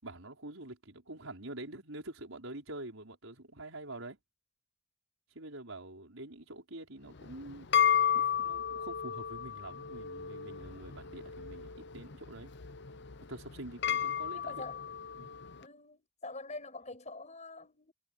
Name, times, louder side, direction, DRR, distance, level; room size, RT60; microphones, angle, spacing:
voice 1, 0.0-4.2 5.3-7.7 8.1-12.5 13.3-14.6 15.2-15.4, right 2 dB, 80° right, 5.3 m, -46 dB
sound 1, 7.1-15.6, left 9 dB, 55° left, 0.8 m, -33 dB
voice 2, 14.3-14.8 15.6-17.9, left 2 dB, 35° left, 7.3 m, -45 dB
head